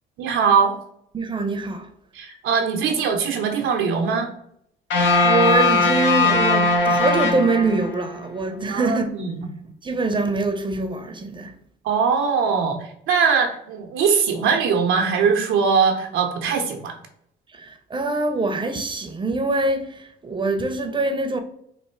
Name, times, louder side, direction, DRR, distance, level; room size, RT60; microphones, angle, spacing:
voice 1, 0.2-0.8 2.1-4.3 8.7-9.5 11.8-17.0, right 6 dB, 85° right, 0.7 m, -21 dB
voice 2, 1.1-1.9 5.2-9.0 9.8-11.5 17.5-21.4, right 3 dB, 25° right, 0.6 m, -24 dB
sound 1, 4.9-8.1, left 3 dB, 70° left, 0.9 m, -19 dB
3.3 x 2.6 x 4.4 m
cardioid pair, 90°, 20 cm